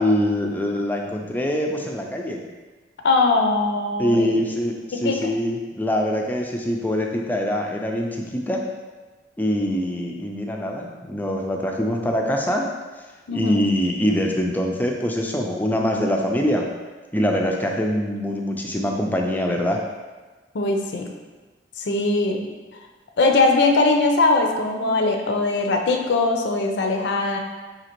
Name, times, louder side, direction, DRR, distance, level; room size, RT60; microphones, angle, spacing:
voice 1, 0.0-2.4 4.0-8.7 9.4-12.7 13.3-16.7 17.1-19.8, equal, 10° left, 1 dB, 0.3 m, -24 dB
voice 2, 3.0-4.4 5.0-5.2 13.3-13.6 20.5-21.1 21.8-22.5 23.2-27.4, left 3 dB, 65° left, 3 dB, 0.5 m, -20 dB
5.0 x 2.8 x 2.9 m, 1.3 s
head